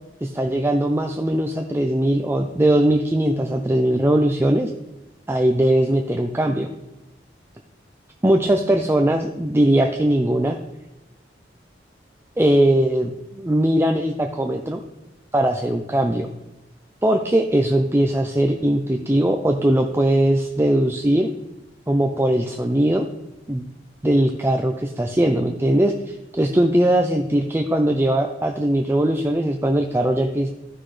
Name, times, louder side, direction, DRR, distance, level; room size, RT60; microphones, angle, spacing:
voice 1, 0.2-4.7 5.3-6.7 8.2-10.6 12.4-13.1 13.4-14.8 15.3-16.3 17.0-21.3 21.9-23.1 23.5-23.7 24.0-30.5, right 1 dB, 15° right, 3 dB, 0.5 m, -20 dB
14.0 x 5.9 x 3.2 m, 0.97 s
head